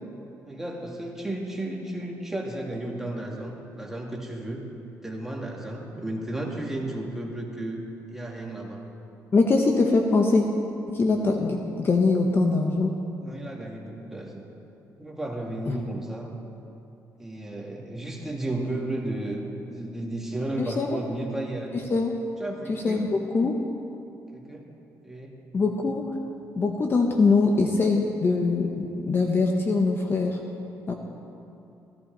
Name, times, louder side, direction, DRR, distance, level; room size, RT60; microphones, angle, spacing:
voice 1, 0.4-4.6 5.0-7.8 8.1-8.8 13.2-14.4 15.0-16.3 17.2-21.9 22.4-23.1 24.3-24.7 25.0-25.3, right 1 dB, 5° right, -1 dB, 2.1 m, -33 dB
voice 2, 9.3-10.4 10.9-12.9 15.7-15.8 20.6-21.0 21.7-22.1 22.7-23.6 25.5-26.0 26.5-30.4 30.9-31.0, left 3 dB, 35° left, 3 dB, 1.0 m, -23 dB
16.0 x 14.0 x 4.0 m, 2.8 s
cardioid pair, 100°, 6 cm